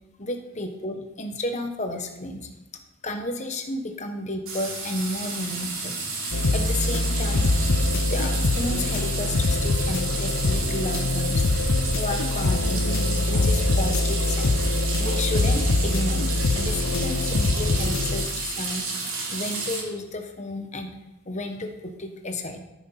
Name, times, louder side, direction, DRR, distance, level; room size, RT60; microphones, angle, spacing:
voice 1, 0.2-2.5 3.0-6.0 6.5-7.5 8.1-11.4 11.9-12.9 13.3-14.5 15.0-16.2 16.5-18.8 19.3-20.9 21.2-22.6, left 2 dB, 35° left, 5 dB, 1.1 m, -32 dB
sound 1, 4.5-19.8, right 3 dB, 75° right, 3.2 m, -31 dB
sound 2, 6.3-18.3, left 2 dB, 75° left, 0.7 m, -24 dB
13.0 x 6.2 x 5.7 m, 1.0 s
head